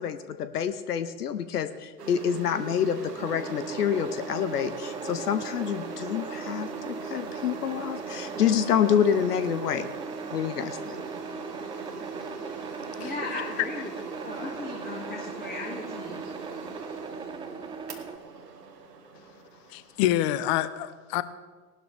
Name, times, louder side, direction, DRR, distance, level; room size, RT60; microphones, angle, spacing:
voice 1, 0.0-9.9 10.3-11.0, left 8 dB, 75° left, 12 dB, 0.9 m, -27 dB
sound 1, 2.0-20.5, right 3 dB, 85° right, 1.7 m, -41 dB
sound 2, 3.2-18.2, right 5 dB, 10° right, 0.5 m, -39 dB
voice 2, 13.0-13.9 14.2-16.2, left 4 dB, 20° left, -3 dB, 2.3 m, -37 dB
voice 3, 19.7-21.2, left 13 dB, 45° left, 15 dB, 0.8 m, -27 dB
18.0 x 12.0 x 3.5 m, 1.4 s
hypercardioid pair, 90°, 47 cm